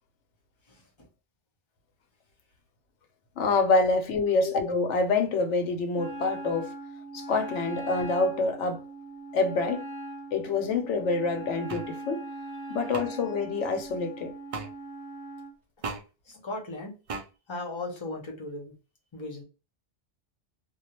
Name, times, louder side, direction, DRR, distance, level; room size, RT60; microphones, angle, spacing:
voice 1, 0.6-1.1 16.2-17.2 17.5-18.8 19.1-19.4, left 2 dB, 30° left, 0.7 m, -38 dB
voice 2, 3.4-6.7 7.1-8.8 9.3-9.9 10.3-12.2 12.7-14.3, left 3 dB, 90° left, 1.0 m, -26 dB
Wind instrument woodwind instrument, 5.9-15.5, right 2 dB, ahead, 1.0 m, -40 dB
sound 1, 11.7-11.9 12.9-13.1 14.5-14.7 15.8-16.0 17.1-17.3, right 4 dB, 65° right, 0.3 m, -35 dB
2.3 x 2.2 x 2.9 m
omnidirectional pair, 1.2 m